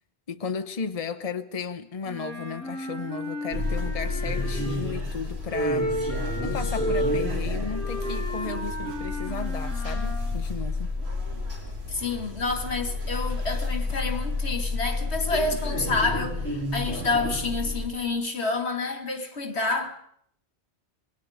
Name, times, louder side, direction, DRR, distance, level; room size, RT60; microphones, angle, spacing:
voice 1, 0.3-5.9 6.4-11.0, left 5 dB, 35° left, 1.0 m, -34 dB
Wind instrument woodwind instrument, 2.0-5.0 5.5-10.4, equal, 15° left, 6.5 m, -32 dB
sound 1, 3.5-17.9, left 2 dB, 70° right, 4.5 m, -30 dB
voice 2, 11.9-19.9, left 3 dB, 75° left, 2.4 m, -28 dB
27.5 x 21.5 x 5.1 m
omnidirectional pair, 1.1 m